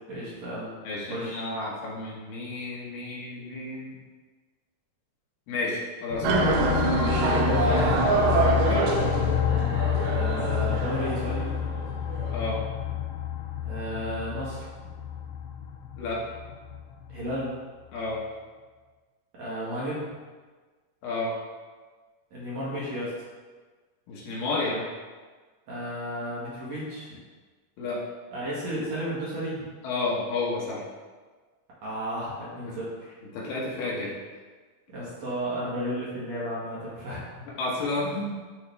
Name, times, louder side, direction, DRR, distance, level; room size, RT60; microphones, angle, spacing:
voice 1, 0.1-0.7 1.1-1.5 7.5-8.0 10.1-11.5 13.6-14.7 17.1-17.5 19.3-20.1 22.3-23.1 25.7-27.2 28.3-29.6 31.8-33.1 34.9-37.4, right 1 dB, 55° right, -8 dB, 2.5 m, -33 dB
voice 2, 0.8-4.0 5.5-6.7 8.6-8.9 12.3-12.6 16.0-16.2 17.9-18.2 21.0-21.3 24.1-24.9 27.8-28.0 29.8-30.8 32.7-32.8 33.3-34.2 37.6-38.3, left 2 dB, 70° left, -4 dB, 2.6 m, -31 dB
sound 1, 6.1-17.4, left 9 dB, 85° left, 1.8 m, -29 dB
sound 2, 6.2-12.3, right 4 dB, 80° right, 1.7 m, -26 dB
11.0 x 3.8 x 3.4 m, 1.4 s
omnidirectional pair, 4.2 m